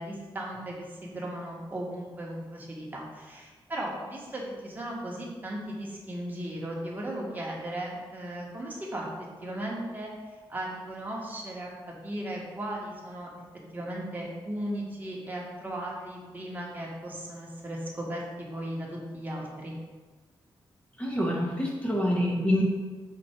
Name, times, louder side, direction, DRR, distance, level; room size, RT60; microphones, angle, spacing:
voice 1, 0.0-9.1 9.4-10.1 10.5-13.3 13.7-18.2 18.5-19.7, right 1 dB, 20° right, -3 dB, 1.3 m, -36 dB
voice 2, 21.0-22.6, left 1 dB, 15° left, -3 dB, 1.3 m, -26 dB
5.9 x 4.2 x 4.4 m, 1.3 s
wide cardioid pair, 140°, 9 cm